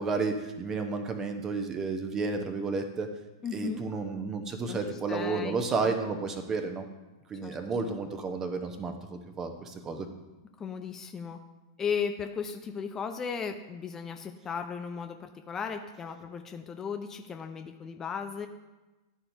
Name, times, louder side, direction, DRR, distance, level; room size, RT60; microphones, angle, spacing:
voice 1, 0.0-3.1 3.5-6.8 7.3-10.1, right 4 dB, 25° right, 6 dB, 0.9 m, -32 dB
voice 2, 3.4-3.8 4.7-5.9 7.4-7.5 7.9-8.0 10.6-11.4 11.8-18.5, left 6 dB, 20° left, 6 dB, 0.5 m, -36 dB
12.0 x 4.3 x 2.7 m, 1.1 s
figure-of-eight pair, 100°, 2 cm